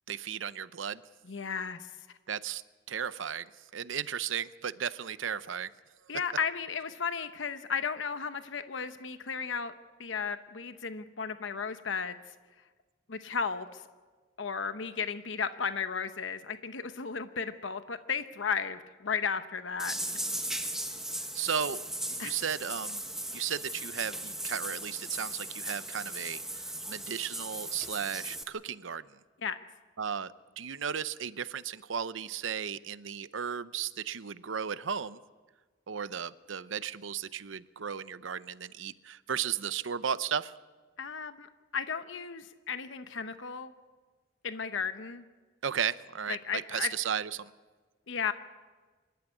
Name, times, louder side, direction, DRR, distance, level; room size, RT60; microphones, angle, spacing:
voice 1, 0.1-1.0 2.3-2.6 2.9-5.7 21.3-21.8 22.1-23.0 23.3-29.0 30.0-35.2 35.9-40.5 45.6-47.5, right 8 dB, 80° right, 16 dB, 0.7 m, -35 dB
voice 2, 1.3-1.9 6.1-9.7 10.0-12.2 13.1-13.8 14.4-20.0 22.2-22.3 29.4-29.6 41.0-43.7 44.4-45.2 46.3-46.9 48.1-48.3, left 6 dB, 75° left, 10 dB, 0.9 m, -34 dB
Shower running lightly, 19.8-28.4, right 1 dB, 5° right, 1.2 m, -37 dB
26.0 x 13.0 x 9.8 m, 1.4 s
head